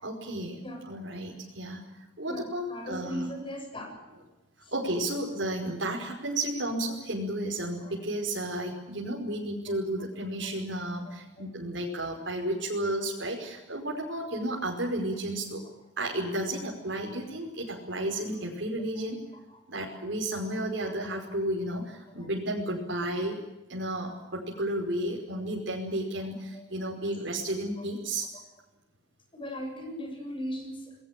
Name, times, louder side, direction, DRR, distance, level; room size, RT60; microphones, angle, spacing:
voice 1, 0.0-1.8 2.2-3.3 4.7-15.6 16.0-19.2 19.7-23.4 23.7-28.3, right 1 dB, 65° right, -2 dB, 5.2 m, -32 dB
voice 2, 2.2-3.9 4.6-4.7 7.8-7.9 9.7-9.8 10.4-10.5 16.0-16.1 19.0-19.1 19.5-19.6 20.8-20.9 22.2-22.3 26.2-26.3 27.8-27.9 29.3-31.0, equal, 25° left, 4 dB, 7.3 m, -38 dB
27.5 x 20.5 x 7.5 m, 1.0 s
head